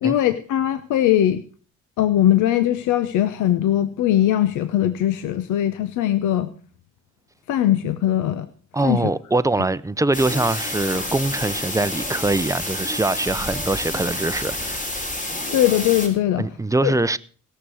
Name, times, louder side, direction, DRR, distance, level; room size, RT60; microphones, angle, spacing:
voice 1, 0.0-1.4 2.0-6.5 7.5-8.5 8.8-9.1 15.5-16.5 16.8-16.9, left 12 dB, 90° left, 0.8 m, -20 dB
voice 2, 8.7-14.9 16.4-17.2, right 2 dB, 10° right, 0.6 m, -23 dB
sound 1, 10.1-16.1, left 1 dB, 25° left, 3.4 m, -29 dB
17.0 x 6.9 x 6.2 m
cardioid pair, 90°, 30 cm